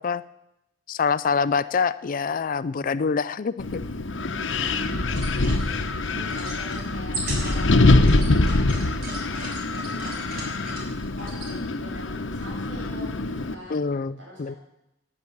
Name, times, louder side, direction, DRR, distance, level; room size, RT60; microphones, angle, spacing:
voice 1, 0.9-3.8 13.7-14.6, left 5 dB, 45° left, 16 dB, 0.4 m, -25 dB
Wind, 3.6-13.5, left 2 dB, 85° left, 1.0 m, -24 dB
voice 2, 4.5-5.3 5.7-7.7 8.4-10.6 10.9-13.8 14.2-14.6, equal, 80° right, -1 dB, 6.4 m, -44 dB
sound 1, 5.0-11.5, right 2 dB, 50° right, 4.0 m, -39 dB
12.0 x 9.8 x 8.5 m, 0.90 s
head